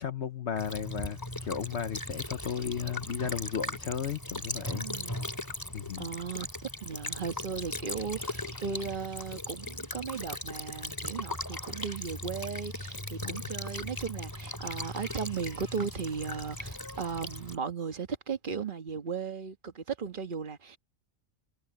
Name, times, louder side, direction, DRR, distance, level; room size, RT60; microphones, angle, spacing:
voice 1, 0.0-4.9 5.7-6.1 13.2-13.5, left 8 dB, 60° left, 1.1 m, -35 dB
Child speech kid speaking / Bird vocalization bird call bird song / Stream, 0.6-17.6, left 1 dB, 15° left, 3.1 m, -38 dB
voice 2, 4.7-5.3 6.0-6.5 6.8-20.8, right 5 dB, 40° right, 1.5 m, -36 dB
omnidirectional pair, 1.4 m